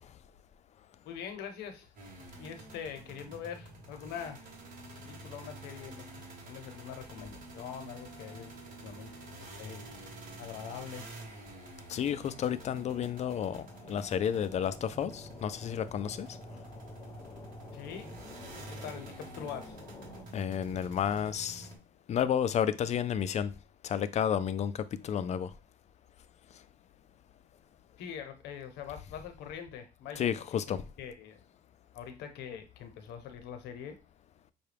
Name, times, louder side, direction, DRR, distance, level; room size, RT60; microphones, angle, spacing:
voice 1, 1.0-1.9 2.4-4.5 4.9-6.1 6.4-9.1 9.6-9.8 10.4-11.1 17.7-18.1 18.7-19.8 28.0-31.4 31.9-33.9, left 8 dB, 85° left, 0.9 m, -43 dB
sound 1, 2.0-21.8, right 2 dB, 55° right, 1.4 m, -48 dB
sound 2, 7.8-20.3, left 3 dB, 25° left, 0.7 m, -52 dB
voice 2, 11.9-16.3 20.3-21.7 22.1-23.5 23.8-25.5 30.2-30.8, left 9 dB, 40° left, 0.4 m, -31 dB
5.6 x 2.3 x 3.4 m
cardioid pair, 110°, 17 cm